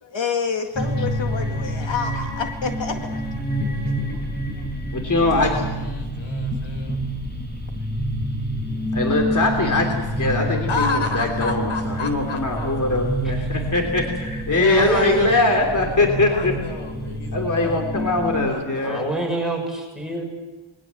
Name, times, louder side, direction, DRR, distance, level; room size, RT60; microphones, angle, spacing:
voice 1, 0.0-3.0, left 6 dB, 70° left, 4 dB, 2.1 m, -27 dB
sound 1, 0.7-18.5, equal, 20° left, 6.6 m, -28 dB
voice 2, 4.9-5.7 8.9-16.5 17.3-19.1, left 2 dB, 40° left, 3 dB, 3.3 m, -22 dB
voice 3, 5.5-7.0 10.7-12.7 14.7-15.5 16.3-17.9 18.4-19.1, left 3 dB, 85° left, 7 dB, 4.3 m, -32 dB
voice 4, 13.2-13.6 14.5-15.5 18.7-20.2, right 1 dB, ahead, 1 dB, 6.5 m, -27 dB
28.0 x 21.5 x 7.8 m, 1.2 s
wide cardioid pair, 115°, 47 cm